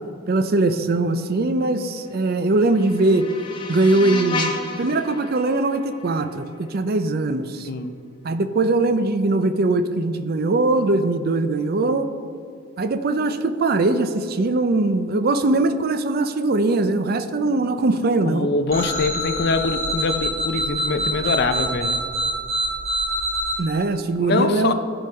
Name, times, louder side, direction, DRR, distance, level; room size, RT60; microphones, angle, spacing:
voice 1, 0.3-3.2 3.7-7.7 8.2-12.1 12.8-18.5 23.6-24.7, right 2 dB, 45° right, 10 dB, 0.5 m, -21 dB
sound 1, 2.1-7.1, left 3 dB, 25° left, 1.0 m, -33 dB
voice 2, 7.6-7.9 18.3-22.0 24.2-24.7, left 3 dB, 50° left, 9 dB, 0.5 m, -23 dB
sound 2, 18.7-23.5, right 1 dB, 30° right, 1.6 m, -25 dB
14.0 x 5.3 x 4.3 m, 2.5 s
head